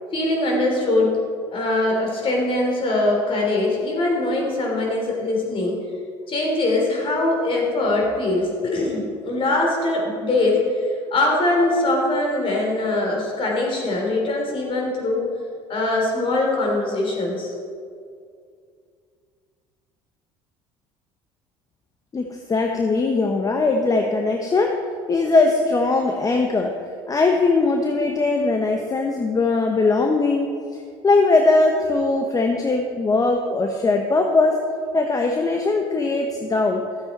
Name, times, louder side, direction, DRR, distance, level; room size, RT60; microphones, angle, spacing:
voice 1, 0.1-1.1 1.5-5.8 6.3-15.3 15.7-17.5, left 2 dB, 45° left, 0 dB, 3.1 m, -22 dB
voice 2, 22.1-24.8 25.1-26.7 27.1-34.6 34.9-36.8, left 3 dB, 30° left, 3 dB, 0.9 m, -20 dB
12.5 x 8.0 x 4.2 m, 2.3 s
supercardioid pair, 80°, 13 cm